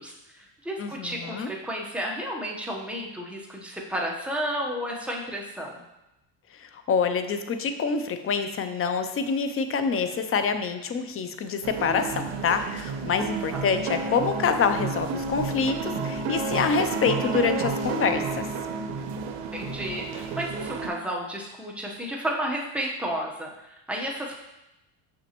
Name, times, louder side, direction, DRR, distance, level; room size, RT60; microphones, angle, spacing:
voice 1, 0.0-5.8 13.1-13.2 13.5-13.6 19.5-24.4, equal, 5° right, -2 dB, 1.0 m, -32 dB
voice 2, 0.8-1.5 6.6-18.4, left 5 dB, 30° left, 9 dB, 0.5 m, -26 dB
sound 1, 11.6-20.9, right 4 dB, 65° right, 0.8 m, -31 dB
6.2 x 6.0 x 3.0 m, 0.93 s
cardioid pair, 120°, 47 cm